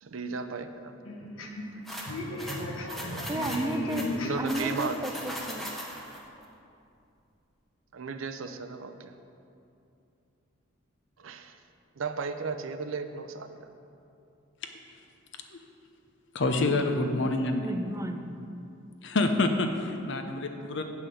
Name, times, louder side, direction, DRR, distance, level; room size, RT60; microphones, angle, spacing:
voice 1, 0.0-0.9 4.2-5.0 7.9-9.1 11.2-11.6 12.0-13.7, right 5 dB, 80° right, 9 dB, 0.6 m, -35 dB
voice 2, 1.0-4.4, left 1 dB, 85° left, 1 dB, 1.3 m, -36 dB
sound 1, 1.9-6.2, equal, ahead, 1.0 m, -39 dB
voice 3, 3.3-4.0 4.4-5.7 17.6-18.3, right 1 dB, 15° right, 5 dB, 0.4 m, -33 dB
voice 4, 16.3-17.7 19.0-20.8, left 2 dB, 60° left, 6 dB, 0.7 m, -27 dB
8.4 x 5.7 x 6.8 m, 2.6 s
head